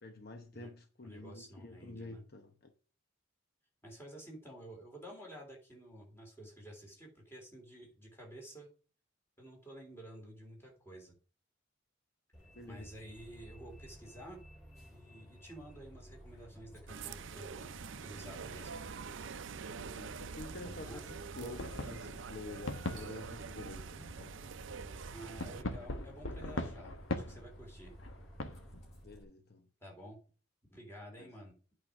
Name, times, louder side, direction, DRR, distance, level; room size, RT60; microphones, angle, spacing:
voice 1, 0.0-2.7 12.5-12.9 19.8-24.4 29.0-29.7 31.2-31.3, left 2 dB, 50° left, 1.0 m, -48 dB
voice 2, 1.0-2.2 3.8-8.7 9.4-11.1 12.7-14.4 14.9-17.7 18.0-18.8 20.6-21.1 25.1-27.9 29.8-30.2 30.7-31.6, right 1 dB, 10° left, 3.4 m, -51 dB
Bus, 12.3-29.2, equal, 35° left, 5.4 m, -54 dB
sound 1, 16.9-25.6, right 5 dB, 70° right, 0.6 m, -45 dB
sound 2, 21.5-23.8 25.4-28.9, left 2 dB, 80° left, 1.2 m, -41 dB
8.9 x 5.2 x 6.2 m
head